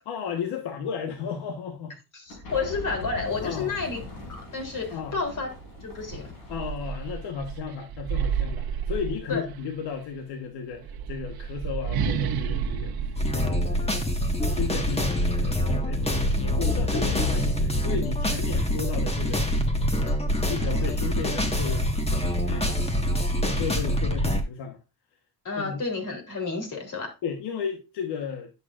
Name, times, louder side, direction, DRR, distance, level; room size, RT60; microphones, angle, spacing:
voice 1, 0.1-2.0 3.4-3.8 4.9-5.2 6.5-14.1 14.4-19.4 20.4-21.9 22.5-22.7 23.4-24.8 25.5-25.8 27.2-28.5, left 6 dB, 70° left, 1.3 m, -34 dB
voice 2, 2.1-4.0 4.3-5.5 5.8-6.3 9.3-9.4 25.4-27.1, left 4 dB, 45° left, 3.3 m, -30 dB
sound 1, 2.3-7.3, left 2 dB, 85° left, 5.0 m, -41 dB
sound 2, 5.5-5.7 6.1-9.7 10.7-14.3, right 7 dB, 60° right, 1.1 m, -31 dB
sound 3, 13.2-24.4, equal, 15° left, 1.5 m, -25 dB
10.5 x 6.9 x 2.5 m
cardioid pair, 90°, 42 cm